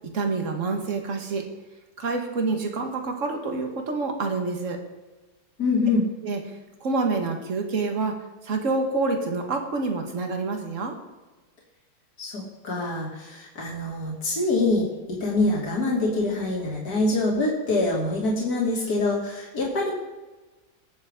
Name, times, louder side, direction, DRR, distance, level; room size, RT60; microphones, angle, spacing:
voice 1, 0.1-1.4 2.0-4.8 6.2-6.4 6.8-8.2 8.4-11.0, right 3 dB, 50° right, 4 dB, 1.8 m, -27 dB
voice 2, 5.6-6.1 12.2-14.9 15.2-19.9, left 2 dB, 65° left, -4 dB, 3.0 m, -25 dB
19.5 x 7.4 x 3.7 m, 1.2 s
omnidirectional pair, 1.8 m